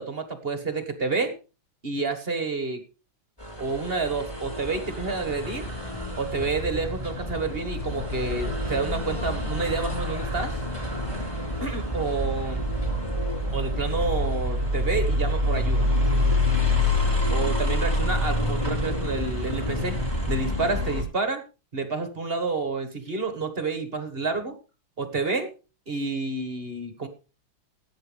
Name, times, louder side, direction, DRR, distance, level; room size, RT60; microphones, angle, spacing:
voice 1, 0.0-1.3 1.8-2.8 3.6-5.7 6.2-10.6 11.6-12.6 13.5-15.9 17.3-20.0 20.3-21.4 21.7-24.6 25.0-25.5 25.9-27.1, right 3 dB, 30° right, 8 dB, 1.5 m, -29 dB
sound 1, 3.4-21.0, left 1 dB, 10° left, 5.0 m, -27 dB
17.5 x 9.3 x 3.3 m, 0.32 s
omnidirectional pair, 2.3 m